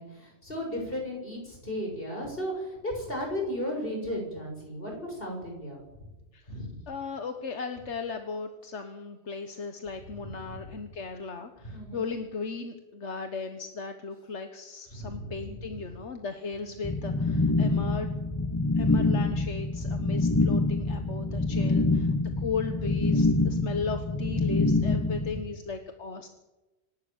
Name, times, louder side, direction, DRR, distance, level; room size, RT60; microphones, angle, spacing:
voice 1, 0.0-6.1 6.5-6.8 10.1-10.6 11.6-12.1 14.9-15.8 16.6-17.4 21.0-21.6 24.6-25.4, equal, 55° left, 1 dB, 7.3 m, -36 dB
voice 2, 6.3-18.2 18.7-26.3, left 4 dB, 85° left, 6 dB, 1.7 m, -36 dB
sound 1, 16.8-25.4, left 2 dB, 15° left, 1.3 m, -26 dB
26.5 x 12.5 x 9.0 m, 1.0 s
omnidirectional pair, 1.2 m